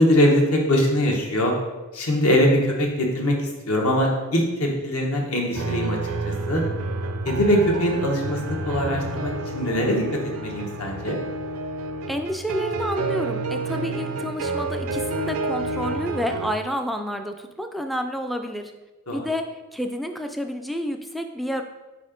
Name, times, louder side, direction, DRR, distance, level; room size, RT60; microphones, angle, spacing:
voice 1, 0.0-1.5 1.9-6.0 6.2-6.6 7.2-11.2 19.1-19.2, equal, 70° left, 0 dB, 1.2 m, -22 dB
sound 1, 5.5-16.5, right 2 dB, 70° right, 0.5 m, -29 dB
voice 2, 12.1-18.7 19.1-21.6, equal, ahead, 5 dB, 0.3 m, -29 dB
4.8 x 4.2 x 5.1 m, 1.2 s
head